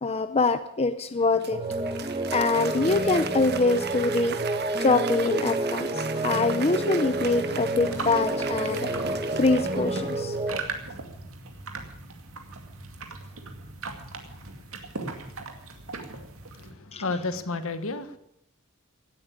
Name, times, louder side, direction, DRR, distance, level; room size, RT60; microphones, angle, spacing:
voice 1, 0.0-1.6 2.3-4.4 4.8-8.9 9.4-10.4 16.9-17.0, left 3 dB, 30° left, 0.7 m, -24 dB
Applause, 1.1-10.7, right 7 dB, 50° right, 1.1 m, -37 dB
sound 1, 1.5-10.6, right 2 dB, 25° right, 1.2 m, -30 dB
sound 2, 7.7-16.7, right 3 dB, 70° right, 2.3 m, -39 dB
voice 2, 16.6-18.2, left 3 dB, 65° left, 1.4 m, -31 dB
17.0 x 9.0 x 8.6 m
head